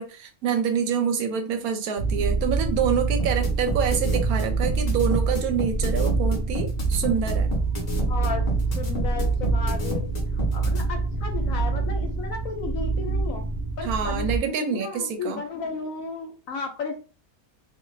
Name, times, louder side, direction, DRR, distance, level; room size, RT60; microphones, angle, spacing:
voice 1, 0.0-7.5 13.8-15.4, right 7 dB, 80° right, 1.1 m, -26 dB
sound 1, 2.0-14.4, right 3 dB, 45° right, 0.6 m, -26 dB
sound 2, 3.2-10.8, equal, 40° left, 0.7 m, -31 dB
voice 2, 8.1-8.5 8.8-13.5 13.8-17.0, left 5 dB, 70° left, 1.0 m, -34 dB
2.7 x 2.4 x 3.1 m
omnidirectional pair, 1.6 m